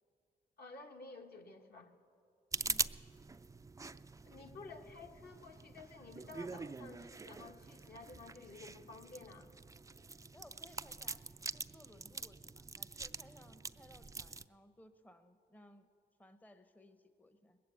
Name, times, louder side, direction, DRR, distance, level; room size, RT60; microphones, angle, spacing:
voice 1, 0.6-1.9 4.2-9.5, left 3 dB, 60° left, 2 dB, 1.6 m, -53 dB
sound 1, 2.5-14.4, right 3 dB, 15° right, 0.4 m, -44 dB
voice 2, 10.3-11.3 11.5-15.9 16.2-17.6, left 1 dB, 10° left, 9 dB, 0.8 m, -61 dB
20.5 x 8.5 x 8.3 m, 2.4 s
supercardioid pair, 60°, 19 cm